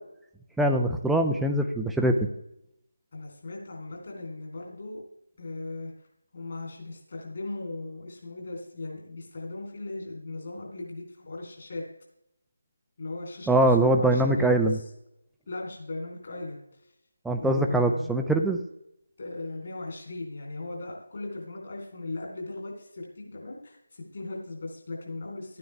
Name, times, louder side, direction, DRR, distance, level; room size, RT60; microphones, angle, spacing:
voice 1, 0.6-2.2 13.5-14.8 17.2-18.6, right 1 dB, ahead, 4 dB, 0.5 m, -23 dB
voice 2, 3.1-5.0 5.4-5.9 6.3-11.8 13.0-14.8 15.5-16.6 17.4-18.1 19.2-25.6, left 2 dB, 45° left, 0 dB, 3.5 m, -38 dB
12.5 x 9.4 x 3.4 m, 0.80 s
figure-of-eight pair, 155°, 0 cm